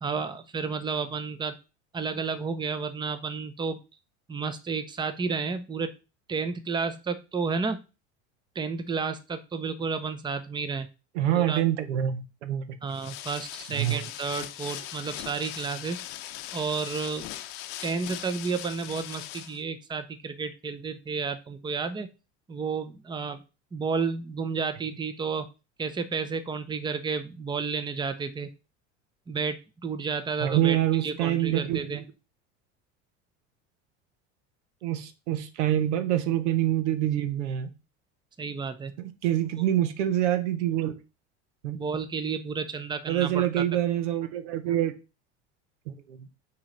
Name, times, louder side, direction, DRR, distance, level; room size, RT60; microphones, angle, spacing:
voice 1, 0.0-1.6 1.9-3.8 4.3-5.9 6.3-7.8 8.6-10.9 11.3-11.6 12.8-16.0 16.5-17.3 17.8-22.1 22.5-23.4 23.7-25.5 25.8-28.5 29.3-30.8 31.0-32.0 38.4-38.9 39.4-39.5 41.7-43.6, right 5 dB, 15° right, 0.6 m, -31 dB
voice 2, 11.1-12.6 13.7-14.0 30.4-32.0 34.8-37.7 39.0-41.0 41.6-41.8 43.1-44.9 45.9-46.3, right 12 dB, 90° right, 0.9 m, -26 dB
sound 1, 12.9-19.6, left 13 dB, 70° left, 0.7 m, -40 dB
6.1 x 3.1 x 5.1 m
supercardioid pair, 95°, 35 cm